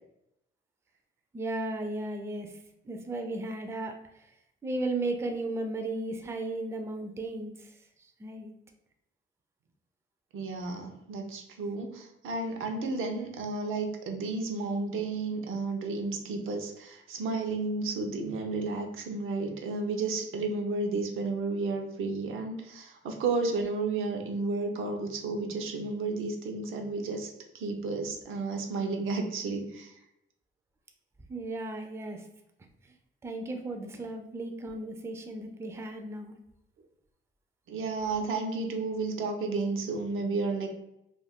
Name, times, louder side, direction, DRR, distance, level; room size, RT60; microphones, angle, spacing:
voice 1, 1.3-2.5 2.8-3.9 4.6-7.7 8.2-8.5 31.3-32.2 33.2-36.4, right 2 dB, 15° right, 4 dB, 0.3 m, -35 dB
voice 2, 10.3-29.9 37.7-40.7, right 3 dB, 85° right, 3 dB, 0.5 m, -32 dB
2.4 x 2.2 x 3.4 m, 0.84 s
cardioid pair, 115°, 21 cm